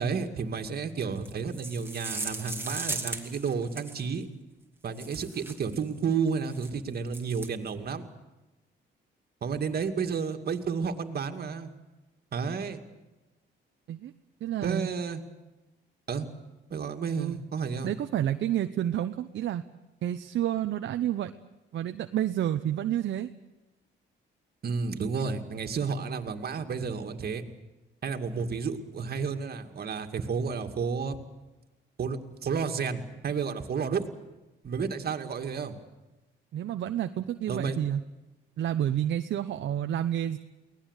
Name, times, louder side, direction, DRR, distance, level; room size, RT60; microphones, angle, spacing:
voice 1, 0.0-4.3 4.8-8.0 9.4-11.7 12.3-12.8 14.6-15.2 16.1-16.3 16.7-17.9 24.6-27.4 28.0-31.2 32.0-34.1 34.6-35.8 37.5-37.8, right 5 dB, 50° right, 6 dB, 2.3 m, -31 dB
sound 1, 1.2-4.1 4.9-5.8 6.4-6.7 7.1-7.5, right 2 dB, 10° right, 2.8 m, -37 dB
voice 2, 14.4-14.9 17.2-17.4 17.8-19.6 20.0-21.3 21.7-23.3 36.5-38.0 38.6-40.4, right 11 dB, 70° right, 7 dB, 0.9 m, -29 dB
23.5 x 18.5 x 8.3 m, 1.1 s
cardioid pair, 90°, 20 cm